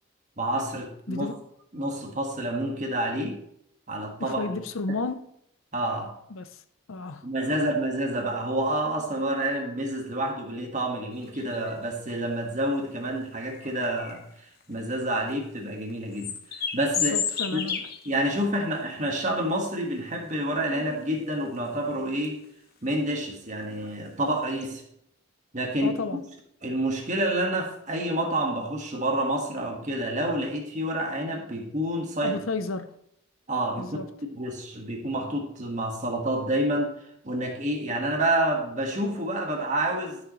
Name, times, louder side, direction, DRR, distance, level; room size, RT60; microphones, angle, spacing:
voice 1, 0.4-1.3 1.7-3.4 3.9-4.6 5.7-6.1 7.2-14.2 14.7-17.1 17.5-17.6 18.0-22.4 22.8-24.8 25.5-26.0 26.6-32.4 33.5-36.9 37.2-40.2, right 1 dB, 35° right, 1.7 m, -28 dB
voice 2, 1.1-1.4 4.2-5.2 6.3-6.6 6.9-7.3 17.0-17.8 25.8-26.2 32.2-32.9 33.8-34.1, left 3 dB, 75° left, 0.7 m, -32 dB
sound 1, 11.1-12.0 12.9-13.0 13.5-15.0 15.3-15.4 15.9-18.4 18.7-18.8 19.3-20.1 20.5-21.1 21.4-21.6 22.1-22.4 23.0-23.1 23.3-23.4 23.9-24.1 24.4-24.6, left 7 dB, 50° left, 0.9 m, -32 dB
13.0 x 6.5 x 3.2 m
head